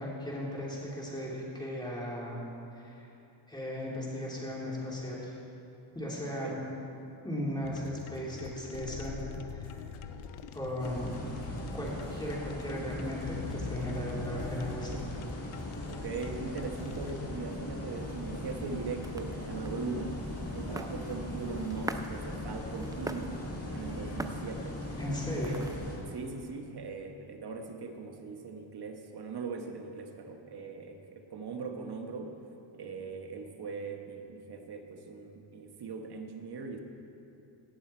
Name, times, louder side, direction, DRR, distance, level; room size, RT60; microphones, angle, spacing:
voice 1, 0.0-2.4 2.8-3.1 3.5-5.3 5.9-6.6 7.2-9.2 9.5-9.9 10.5-11.2 11.7-15.0 25.0-25.6, left 1 dB, 10° left, -5 dB, 3.0 m, -37 dB
voice 2, 6.2-6.6 15.9-20.1 20.5-23.4 23.7-24.8 25.4-25.8 26.1-32.3 32.7-36.8, right 4 dB, 50° right, 4 dB, 1.3 m, -40 dB
sound 1, 7.6-17.3, left 7 dB, 80° left, 0.7 m, -44 dB
sound 2, 10.8-26.0, left 1 dB, 30° left, 2.1 m, -39 dB
sound 3, 17.9-26.0, right 2 dB, 10° right, 0.3 m, -45 dB
17.5 x 7.2 x 4.4 m, 2.8 s
cardioid pair, 90°, 48 cm